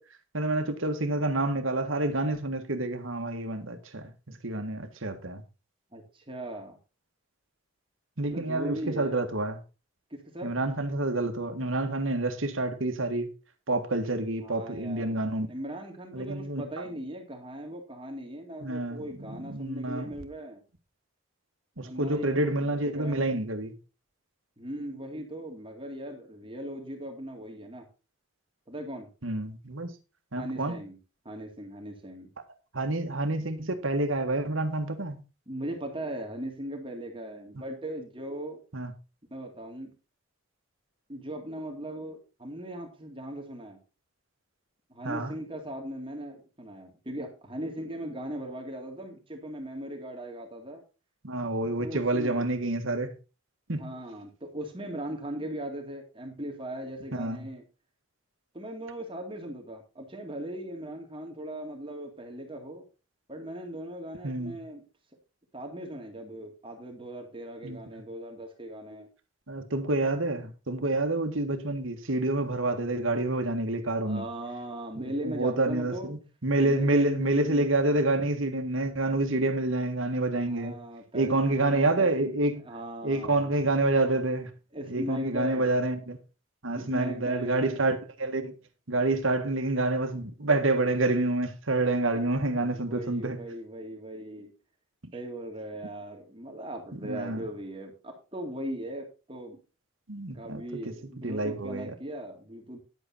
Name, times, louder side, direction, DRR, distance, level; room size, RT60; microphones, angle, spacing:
voice 1, 0.3-5.4 8.2-9.6 10.4-13.3 13.7-15.5 16.1-16.8 18.6-20.1 21.8-23.7 29.2-29.9 30.3-30.8 32.7-35.2 38.7-38.9 45.0-45.3 51.2-53.1 53.7-53.9 57.1-57.5 64.2-64.6 67.6-67.8 69.5-74.3 75.0-80.8 81.1-82.6 83.0-84.5 84.9-86.2 86.6-88.5 88.9-93.4 96.9-97.5 100.1-101.9, right 2 dB, 80° right, 1.8 m, -28 dB
voice 2, 5.9-6.8 8.2-9.2 10.1-10.5 14.4-15.2 15.5-20.6 21.8-23.3 24.6-27.9 28.7-29.1 30.4-31.0 31.2-32.3 35.5-38.6 39.3-39.9 41.1-43.8 44.9-50.8 51.8-52.5 53.7-57.6 58.5-62.8 63.3-64.8 65.5-69.1 74.0-76.1 76.6-77.7 80.4-82.3 82.6-83.7 84.7-85.7 86.7-87.8 92.1-92.2 92.6-94.5 95.1-99.6 100.3-102.8, right 1 dB, 25° right, 2.3 m, -39 dB
10.5 x 8.0 x 4.3 m
head